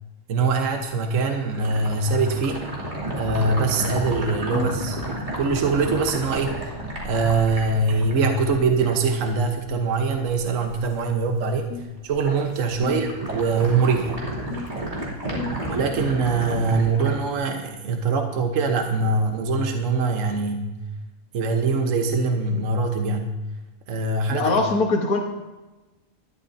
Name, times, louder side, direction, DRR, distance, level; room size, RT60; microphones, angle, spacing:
voice 1, 0.3-2.6 3.2-6.8 7.0-11.7 12.0-14.2 15.7-20.7 21.3-23.3 23.9-24.6, right 4 dB, 60° right, 4 dB, 1.4 m, -23 dB
sound 1, 0.7-11.0 11.4-11.8 12.1-17.1, right 1 dB, 30° right, 2.9 m, -32 dB
voice 2, 24.3-25.2, left 3 dB, 80° left, 1 dB, 1.7 m, -24 dB
19.0 x 12.5 x 2.7 m, 1.1 s
omnidirectional pair, 1.6 m